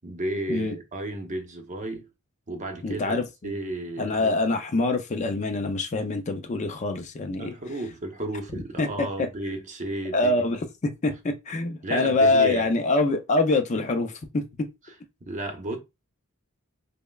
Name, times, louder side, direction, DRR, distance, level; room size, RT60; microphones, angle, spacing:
voice 1, 0.0-2.1 2.5-3.2 3.4-4.3 7.4-10.5 11.8-12.7 15.2-15.8, right 1 dB, 35° right, 0.8 m, -33 dB
voice 2, 2.8-3.5 4.0-7.5 8.8-9.3 10.1-10.6 11.0-14.4, left 2 dB, 35° left, 0.4 m, -25 dB
5.3 x 2.1 x 2.3 m
head